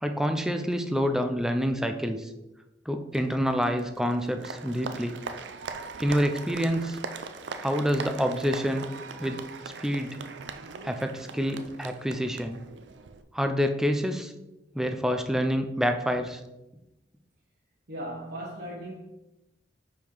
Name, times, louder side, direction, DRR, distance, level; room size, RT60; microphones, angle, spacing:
voice 1, 0.0-2.3 2.9-5.2 6.0-7.0 7.6-8.9 9.2-9.4 9.8-10.2 10.8-12.6 13.3-14.3 14.7-16.4, equal, 5° right, 0.5 m, -27 dB
Applause, 3.1-13.2, right 4 dB, 80° right, 0.5 m, -40 dB
voice 2, 17.9-19.0, right 1 dB, 65° right, 1.1 m, -37 dB
5.5 x 4.9 x 4.6 m
head